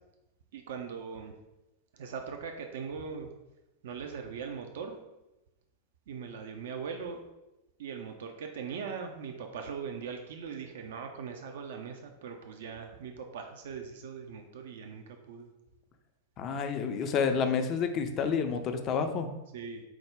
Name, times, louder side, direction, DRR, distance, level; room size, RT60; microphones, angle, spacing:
voice 1, 0.5-1.3 2.0-3.3 3.8-5.0 6.1-7.2 7.8-15.5 19.5-19.8, right 6 dB, 55° right, 4 dB, 0.4 m, -40 dB
voice 2, 16.4-19.3, left 6 dB, 35° left, 7 dB, 0.4 m, -29 dB
4.7 x 2.1 x 3.4 m, 0.96 s
figure-of-eight pair, 90°, 0 cm